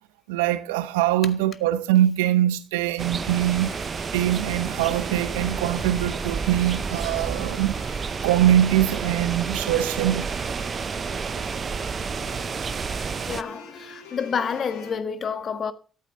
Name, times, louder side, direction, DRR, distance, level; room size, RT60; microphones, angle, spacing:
voice 1, 0.3-3.7 4.1-7.8 8.2-10.3, right 13 dB, 85° right, 0.8 m, -22 dB
sound 1, 3.0-13.4, right 5 dB, 45° right, 0.7 m, -30 dB
sound 2, 3.2-15.0, left 5 dB, 85° left, 3.3 m, -45 dB
voice 2, 13.2-15.7, left 6 dB, 55° left, 1.5 m, -29 dB
13.5 x 12.0 x 3.5 m
hypercardioid pair, 45°, 0 cm